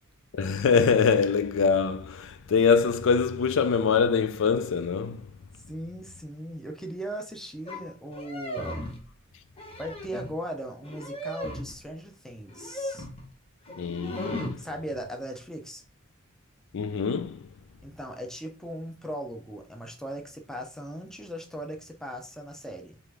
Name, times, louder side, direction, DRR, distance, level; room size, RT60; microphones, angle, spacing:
voice 1, 0.3-5.3 13.8-14.6 16.7-17.5, left 5 dB, 65° left, 0.4 m, -24 dB
voice 2, 5.7-8.8 9.8-13.1 14.6-15.8 17.8-23.0, equal, ahead, 0.6 m, -38 dB
sound 1, 7.7-7.8 8.1-9.1 9.5-10.4 10.9-11.8 12.5-13.3 13.7-14.6, left 1 dB, 25° left, 0.9 m, -36 dB
3.8 x 3.3 x 3.3 m
head